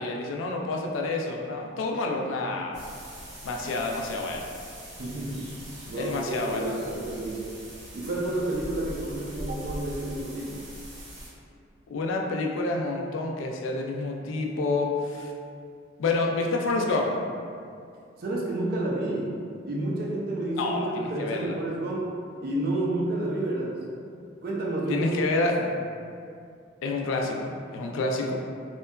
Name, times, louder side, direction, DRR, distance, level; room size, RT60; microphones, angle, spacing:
voice 1, 0.0-2.9 3.4-4.5 6.0-6.8 11.9-15.3 16.0-17.1 20.6-21.6 24.9-25.6 26.8-28.3, left 3 dB, 80° left, 1 dB, 0.3 m, -28 dB
sound 1, 2.7-11.3, equal, 85° right, 1.4 m, -42 dB
voice 2, 5.0-5.6 5.9-7.5 7.9-10.6 18.2-19.4 19.7-22.1 22.4-23.8 24.4-25.5, right 1 dB, 50° right, -3 dB, 0.4 m, -30 dB
2.8 x 2.2 x 2.2 m, 2.3 s
head